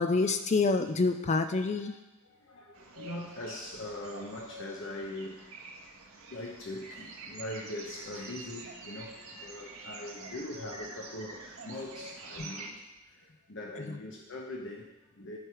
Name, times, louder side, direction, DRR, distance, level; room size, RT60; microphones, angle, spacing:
voice 1, 0.0-1.9 12.4-12.5, left 3 dB, 35° left, 8 dB, 0.4 m, -27 dB
voice 2, 1.8-5.5 6.3-15.4, left 1 dB, 60° left, -1 dB, 1.1 m, -42 dB
sound 1, 2.7-12.7, right 2 dB, 85° right, 1.6 m, -47 dB
12.0 x 4.7 x 4.9 m, 1.0 s
head